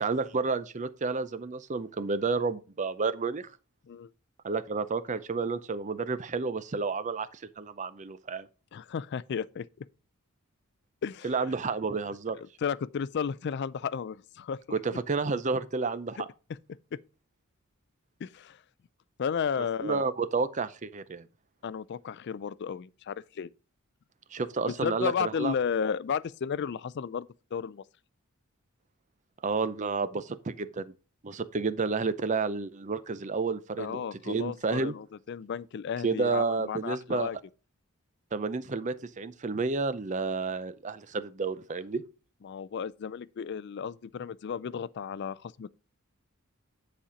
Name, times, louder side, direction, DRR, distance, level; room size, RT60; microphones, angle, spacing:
voice 1, 0.0-3.5 4.4-8.5 11.2-12.4 14.7-16.3 19.8-21.3 24.3-25.5 29.4-30.9 31.2-35.0 36.0-37.3 38.3-42.0, right 4 dB, 35° right, 0.5 m, -30 dB
voice 2, 8.7-9.9 11.0-11.3 12.3-14.8 18.2-18.6 19.2-20.1 21.6-23.5 24.7-27.8 33.8-37.4 42.4-45.8, left 7 dB, 50° left, 0.3 m, -33 dB
10.0 x 4.3 x 4.9 m
head